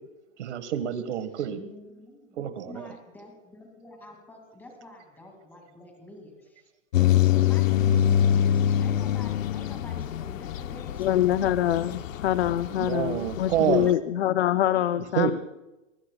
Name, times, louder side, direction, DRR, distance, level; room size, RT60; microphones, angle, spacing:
voice 1, 0.4-1.6 2.4-3.0 7.3-7.7 12.7-13.9 15.0-15.3, right 10 dB, 60° right, 11 dB, 1.6 m, -28 dB
voice 2, 1.5-11.3 13.8-14.3, left 1 dB, 5° left, 1 dB, 2.3 m, -47 dB
sound 1, 6.9-13.9, left 10 dB, 80° left, 0.9 m, -25 dB
voice 3, 11.0-15.3, left 12 dB, 55° left, 11 dB, 0.7 m, -25 dB
24.5 x 20.5 x 2.3 m, 1.0 s
hypercardioid pair, 175°, 39 cm